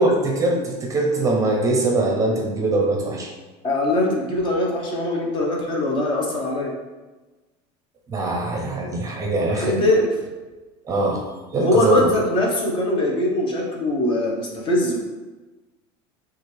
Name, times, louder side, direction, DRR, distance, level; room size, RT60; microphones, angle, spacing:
voice 1, 0.0-3.3 8.1-9.8 10.9-11.3 11.5-12.1, right 2 dB, 25° right, 1 dB, 0.7 m, -22 dB
voice 2, 3.6-6.7 9.5-10.1 11.6-15.0, left 1 dB, 35° left, -1 dB, 1.0 m, -21 dB
5.9 x 2.5 x 3.3 m, 1.2 s
supercardioid pair, 135°, 14 cm